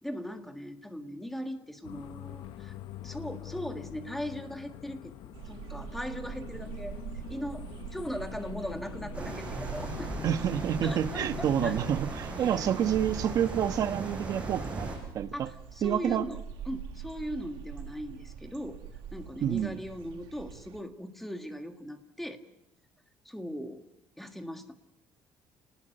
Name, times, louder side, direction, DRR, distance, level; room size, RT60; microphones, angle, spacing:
voice 1, 0.0-2.8 3.0-5.1 5.4-7.0 7.3-7.6 7.9-10.1 10.8-11.8 12.4-12.7 15.3-16.4 16.6-18.8 19.1-22.4 23.2-23.8 24.2-24.7, equal, 5° left, 6 dB, 1.8 m, -39 dB
sound 1, 1.8-11.9, left 11 dB, 70° left, 1.0 m, -44 dB
sound 2, 5.3-20.8, right 8 dB, 85° right, 1.9 m, -44 dB
sound 3, 9.1-15.0, right 2 dB, 15° right, 5.4 m, -38 dB
voice 2, 10.2-14.9 15.1-15.5 15.8-16.3 19.4-19.8, right 9 dB, 45° right, 10 dB, 1.1 m, -28 dB
29.5 x 20.0 x 6.5 m, 0.82 s
cardioid pair, 175°, 9 cm